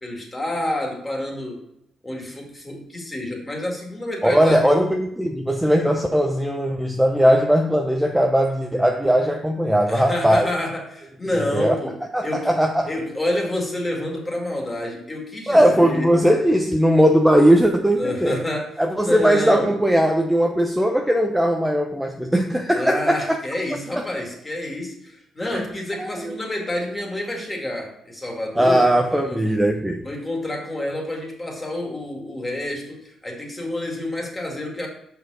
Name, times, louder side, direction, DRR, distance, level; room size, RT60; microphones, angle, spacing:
voice 1, 0.0-1.7 2.0-4.7 9.9-12.0 12.2-12.5 12.9-16.1 18.0-18.7 19.0-19.7 22.7-29.5 30.0-34.9, left 1 dB, 20° left, 0 dB, 2.2 m, -28 dB
voice 2, 4.2-10.5 11.5-11.8 12.1-12.9 15.5-18.4 18.8-23.4 23.9-24.0 25.5-25.6 26.0-26.4 28.5-30.1, equal, 5° right, 3 dB, 0.7 m, -19 dB
5.9 x 4.7 x 6.3 m, 0.78 s
cardioid pair, 90°, 0 cm